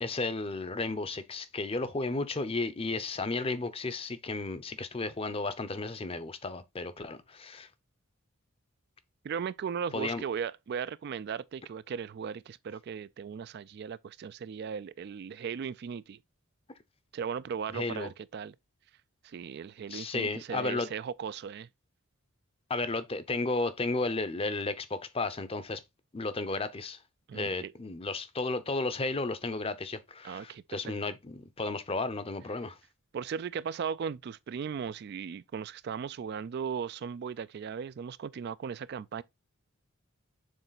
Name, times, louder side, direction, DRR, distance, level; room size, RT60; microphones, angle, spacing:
voice 1, 0.0-7.7 9.9-10.2 17.7-18.1 19.9-20.9 22.7-25.8 26.1-27.0 27.3-32.8, left 3 dB, 25° left, 0.6 m, -33 dB
voice 2, 9.2-16.2 17.1-18.5 19.2-21.7 27.3-27.7 30.2-31.0 33.1-39.2, right 7 dB, 50° right, 0.3 m, -37 dB
6.5 x 3.9 x 3.9 m
head